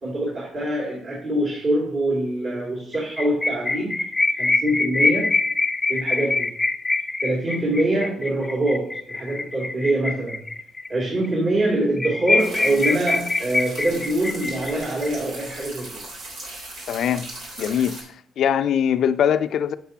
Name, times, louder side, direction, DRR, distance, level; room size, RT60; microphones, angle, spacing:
voice 1, 0.0-4.1 4.4-5.3 5.9-6.5 7.2-10.4 10.9-16.0, right 1 dB, 50° right, 2.7 m, -24 dB
sound 1, 2.9-10.9 11.2-11.3 11.6-11.7 12.0-15.1, left 3 dB, 20° left, 0.5 m, -24 dB
sound 2, 12.4-18.0, right 2 dB, 90° right, 3.3 m, -38 dB
voice 2, 16.9-17.3 17.6-18.0 18.4-19.7, left 9 dB, 70° left, 0.5 m, -21 dB
8.1 x 7.5 x 2.8 m
cardioid pair, 90°, 0 cm